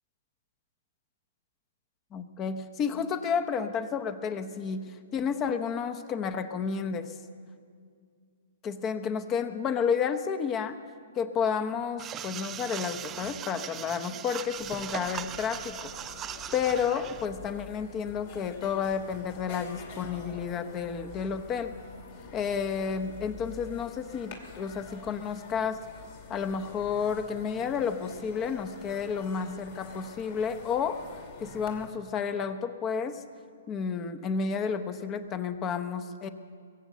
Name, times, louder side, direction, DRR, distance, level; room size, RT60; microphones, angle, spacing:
voice 1, 2.1-7.2 8.6-10.8 11.1-15.9 16.5-21.7 22.3-25.8 26.3-33.2 33.7-36.3, left 6 dB, 25° left, 10 dB, 0.9 m, -31 dB
sound 1, 12.0-17.3, right 10 dB, 20° right, 0.5 m, -39 dB
sound 2, 14.4-31.9, left 5 dB, 50° left, 2.4 m, -47 dB
22.0 x 8.1 x 6.7 m, 2.2 s
hypercardioid pair, 125°, 0 cm